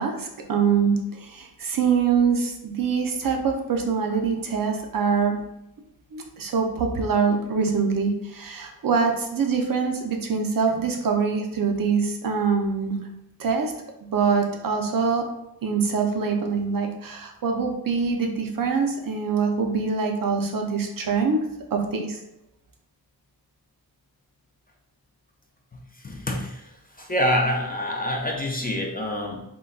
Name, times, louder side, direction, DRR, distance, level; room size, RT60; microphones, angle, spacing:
voice 1, 0.0-5.4 6.1-13.0 13.4-13.7 14.1-15.2 15.6-22.2, right 5 dB, 60° right, 3 dB, 0.5 m, -24 dB
voice 2, 25.7-29.4, left 1 dB, 25° left, 0 dB, 0.4 m, -27 dB
3.7 x 2.1 x 2.3 m, 0.86 s
wide cardioid pair, 115°, 39 cm